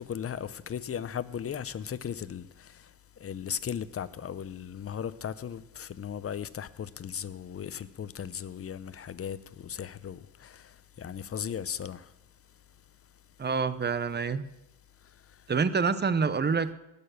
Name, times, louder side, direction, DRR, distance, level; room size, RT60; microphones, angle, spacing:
voice 1, 0.0-12.1 15.3-15.4, left 8 dB, 30° left, 0.7 m, -37 dB
voice 2, 13.4-14.5 15.5-16.7, right 5 dB, 25° right, 0.8 m, -27 dB
17.5 x 7.0 x 6.7 m
cardioid pair, 90°, 44 cm